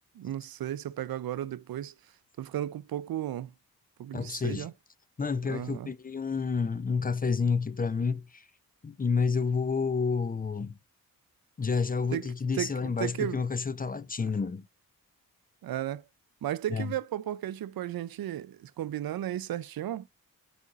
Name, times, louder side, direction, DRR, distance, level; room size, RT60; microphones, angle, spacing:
voice 1, 0.2-1.9 2.4-3.5 4.0-4.7 5.5-5.9 12.1-13.4 15.6-16.0 16.4-20.1, right 12 dB, 75° right, 0.5 m, -34 dB
voice 2, 4.1-4.7 5.2-8.4 8.8-10.7 11.6-14.6 16.7-16.9, left 5 dB, 25° left, 0.5 m, -29 dB
8.3 x 5.1 x 2.4 m
wide cardioid pair, 140°, 36 cm